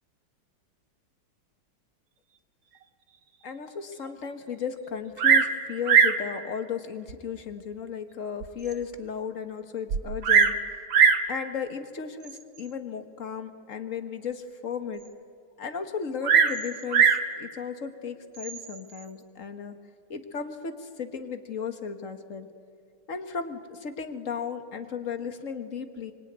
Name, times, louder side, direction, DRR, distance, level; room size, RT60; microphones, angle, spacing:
voice 1, 3.4-10.6 11.3-15.0 15.6-19.7 20.1-22.5 23.1-26.1, left 6 dB, 40° left, 8 dB, 1.7 m, -35 dB
Bird vocalization bird call bird song, 5.2-5.6 5.9-6.2 7.1-7.2 7.8-7.9 8.4-8.5 8.7-8.8 9.9-10.6 10.9-11.3 12.3-12.6 16.2-17.3 18.4-18.8, right 6 dB, 65° right, 1.9 m, -20 dB
25.0 x 24.5 x 9.5 m, 2.2 s
omnidirectional pair, 2.3 m